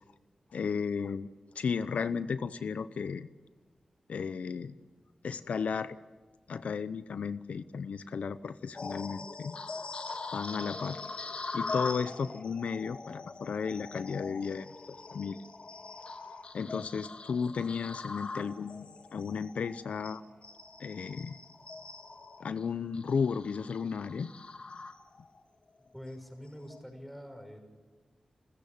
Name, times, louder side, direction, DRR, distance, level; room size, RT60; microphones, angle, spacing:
voice 1, 0.5-1.3 1.5-3.3 4.1-4.7 5.2-6.0 6.5-9.6 10.3-11.0 11.5-15.4 16.5-20.2 20.8-21.4 22.4-24.3, left 6 dB, 80° left, 14 dB, 0.7 m, -34 dB
sound 1, 8.7-25.4 25.9-26.1 26.6-26.8, left 3 dB, 55° left, 1.8 m, -42 dB
voice 2, 25.9-27.6, equal, ahead, 5 dB, 5.7 m, -45 dB
29.5 x 14.5 x 8.6 m, 1.4 s
cardioid pair, 70°, 2 cm